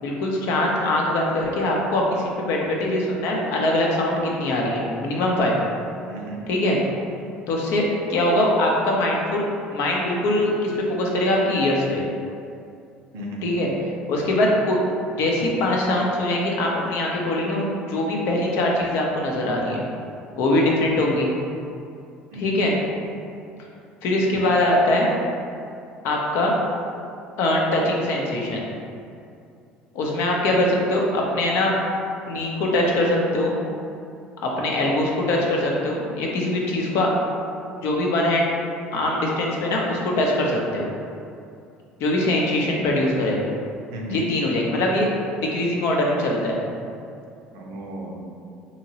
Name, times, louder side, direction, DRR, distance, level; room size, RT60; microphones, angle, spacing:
voice 1, 0.0-5.6 6.5-6.8 7.5-7.8 8.1-9.4 9.7-12.1 13.4-13.7 14.1-14.8 15.1-17.6 17.9-19.8 20.4-21.3 22.3-22.7 24.0-25.1 26.0-26.5 27.4-28.7 29.9-31.7 32.3-33.5 34.4-37.1 37.8-38.5 38.9-40.9 42.0-43.4 44.1-45.1 45.3-46.6, left 1 dB, 65° left, -2 dB, 0.6 m, -22 dB
voice 2, 6.1-6.4 13.1-13.5 22.3-22.6 43.9-44.2 47.5-48.1, right 1 dB, 75° right, 0 dB, 0.5 m, -34 dB
2.8 x 2.8 x 2.8 m, 2.5 s
hypercardioid pair, 70°, 5 cm